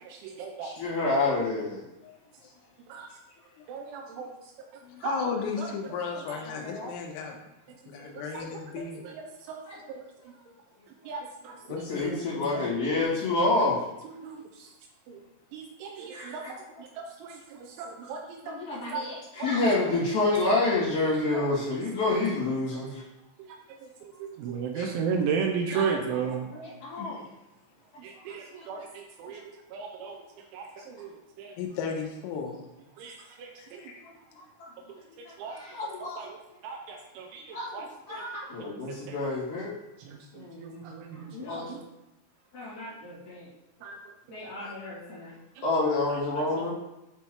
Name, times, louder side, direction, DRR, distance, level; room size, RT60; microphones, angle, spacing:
voice 1, 0.0-0.7 2.9-3.1 3.7-4.3 5.0-5.2 5.6-5.7 6.2-6.3 8.0-8.6 9.0-9.6 9.9-10.3 11.1-11.6 12.5-12.6 14.2-14.7 15.1-15.2 15.5-16.4 16.8-19.1 19.4-19.5 21.3-21.4 23.4-26.5 28.0-30.2 30.5-31.1 31.4-31.5 33.0-33.8 35.4-35.6 36.0-37.9 38.9-39.2 40.1-41.8 43.8-44.0 44.3-44.5 46.1-46.2, right 6 dB, 85° right, 2 dB, 2.8 m, -35 dB
voice 2, 0.6-1.8 6.5-6.9 9.7-9.8 11.7-13.8 16.1-16.6 18.4-23.0 25.7-26.2 26.5-27.2 28.5-28.7 34.6-34.7 35.4-36.2 37.5-39.7 40.3-41.8 42.5-43.5 44.3-46.7, left 2 dB, 50° left, -9 dB, 2.5 m, -29 dB
voice 3, 4.8-7.4 7.9-9.1 11.7-12.6 24.8-24.9 27.0-27.2 31.6-32.6 33.6-33.9, left 5 dB, 85° left, 1 dB, 3.6 m, -35 dB
9.6 x 3.5 x 3.0 m, 0.94 s
omnidirectional pair, 5.9 m